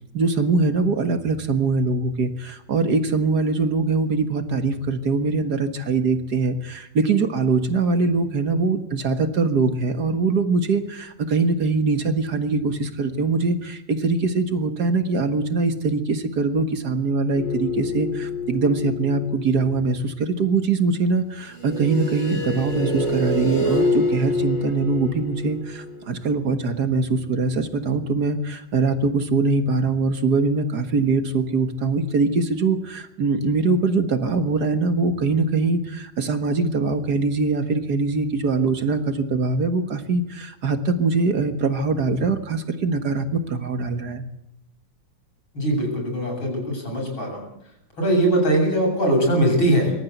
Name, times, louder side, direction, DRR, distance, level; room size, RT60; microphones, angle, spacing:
voice 1, 0.1-44.2, right 3 dB, 55° right, 8 dB, 2.0 m, -22 dB
sound 1, 17.3-19.6 21.5-26.3, left 1 dB, 75° left, 6.3 m, -26 dB
voice 2, 45.5-47.4 48.0-49.9, right 1 dB, 90° left, 0 dB, 8.7 m, -21 dB
25.0 x 13.5 x 8.1 m, 0.83 s
omnidirectional pair, 2.2 m